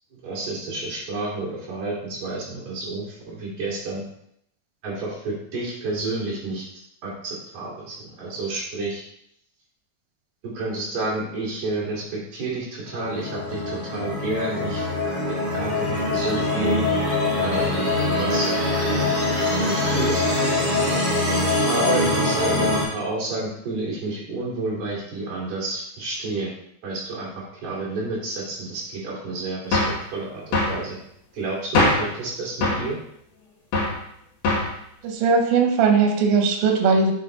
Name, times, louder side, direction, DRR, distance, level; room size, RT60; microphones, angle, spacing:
voice 1, 0.2-4.0 4.8-6.6 7.0-9.0 10.5-14.8 15.5-16.9 17.4-17.8 18.2-18.5 19.3-20.2 21.7-26.5 26.8-27.3 27.6-31.0 31.3-33.0, right 2 dB, 55° right, -6 dB, 3.9 m, -30 dB
sound 1, 12.9-22.8, left 2 dB, 10° left, 0.9 m, -23 dB
sound 2, 29.7-30.0 30.5-30.8 31.8-32.1 32.6-32.9 33.7-34.0 34.4-34.8, left 2 dB, 55° left, 2.3 m, -21 dB
voice 2, 35.0-37.1, right 5 dB, 85° right, 3 dB, 2.8 m, -19 dB
7.5 x 4.1 x 3.9 m, 0.73 s
omnidirectional pair, 4.1 m